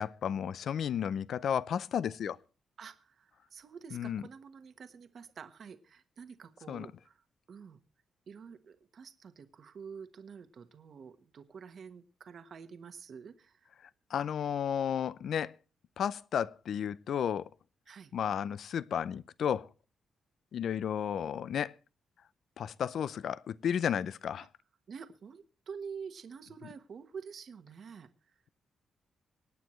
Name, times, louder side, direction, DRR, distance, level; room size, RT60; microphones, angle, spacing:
voice 1, 0.0-2.4 3.9-4.2 6.7-6.9 13.8-15.5 16.0-17.5 18.1-19.7 20.5-21.7 22.6-24.5, left 8 dB, 65° left, 0.5 m, -33 dB
voice 2, 2.8-7.2 7.5-7.8 8.3-13.7 17.9-18.1 24.9-28.1, right 6 dB, 55° right, 1.2 m, -48 dB
25.0 x 9.3 x 3.1 m
cardioid pair, 125°, 0 cm